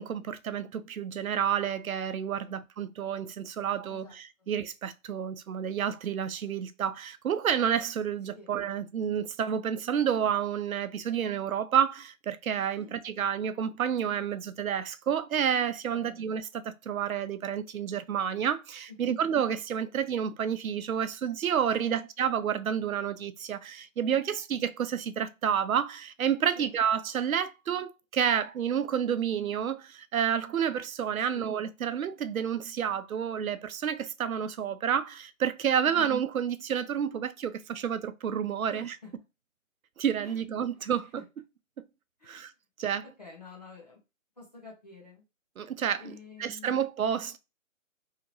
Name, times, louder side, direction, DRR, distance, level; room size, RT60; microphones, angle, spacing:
voice 1, 0.0-38.9 40.0-41.2 42.3-42.5 42.8-43.0 45.6-46.1 46.4-47.4, right 8 dB, 90° right, 0.5 m, -30 dB
voice 2, 3.9-4.5 8.3-8.5 12.8-12.9 15.9-16.3 19.0-19.2 21.8-22.0 26.5-26.7 31.2-31.5 35.8-36.1 38.5-39.1 40.2-40.4 41.0-41.1 42.2-42.5 43.2-44.0 44.4-45.2 46.0-46.9, left 4 dB, 30° left, 0.9 m, -49 dB
2.8 x 2.6 x 2.8 m
hypercardioid pair, 180°, 41 cm